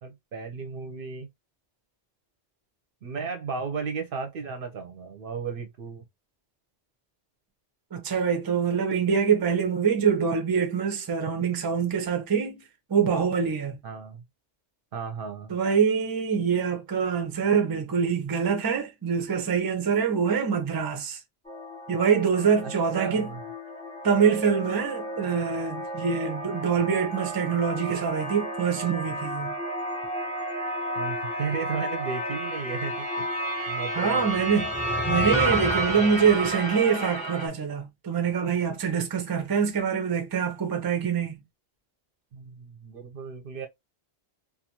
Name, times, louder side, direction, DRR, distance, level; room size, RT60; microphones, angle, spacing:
voice 1, 0.0-1.3 3.0-6.0 13.8-14.2 14.9-15.5 22.6-23.4 31.0-33.3 33.7-34.3 42.3-43.7, right 5 dB, 60° right, 0.7 m, -34 dB
voice 2, 7.9-12.6 12.9-13.8 15.5-21.2 21.9-23.3 24.0-29.5 34.0-34.7 35.1-41.4, right 6 dB, 30° right, 0.4 m, -25 dB
sound 1, 21.5-37.5, right 1 dB, 5° left, 0.8 m, -31 dB
2.5 x 2.3 x 2.8 m
omnidirectional pair, 1.2 m